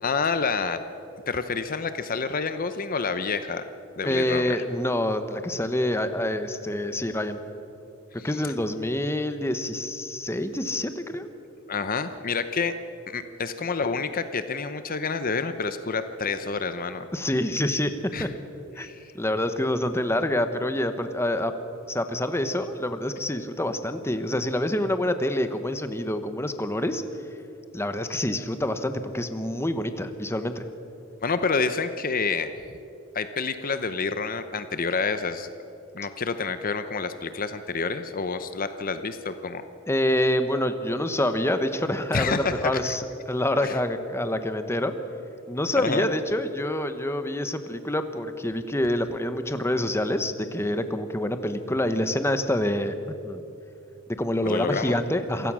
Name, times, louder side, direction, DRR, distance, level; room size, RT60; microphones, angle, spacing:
voice 1, 0.0-0.8 1.3-3.7 4.0-4.6 8.2-8.3 11.7-12.7 13.1-17.1 18.1-18.3 18.8-19.0 31.2-32.5 33.1-35.5 35.9-39.6 42.1-42.9 43.6-43.7 45.7-46.1 54.4-55.0, left 4 dB, 45° left, 10 dB, 0.8 m, -28 dB
voice 2, 4.0-7.4 8.2-11.3 17.1-18.3 18.8-18.9 19.1-21.5 21.9-27.0 27.7-30.6 39.9-44.9 45.5-52.9 53.2-53.4 54.1-55.5, left 1 dB, 10° left, 9 dB, 1.0 m, -27 dB
27.5 x 16.0 x 6.3 m, 2.7 s
head